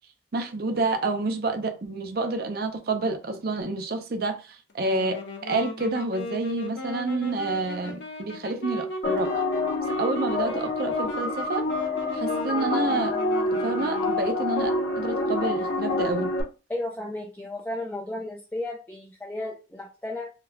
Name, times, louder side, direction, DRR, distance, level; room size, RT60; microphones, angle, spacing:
voice 1, 0.3-9.3 10.0-11.7 12.1-13.2 13.5-16.3, right 3 dB, 55° right, 0.5 m, -29 dB
Wind instrument woodwind instrument, 4.7-14.4, left 1 dB, 85° left, 0.7 m, -37 dB
sound 1, 9.0-16.4, left 2 dB, 55° left, 0.9 m, -27 dB
voice 2, 16.7-20.3, left 1 dB, 10° left, 0.4 m, -34 dB
3.8 x 2.7 x 2.2 m
head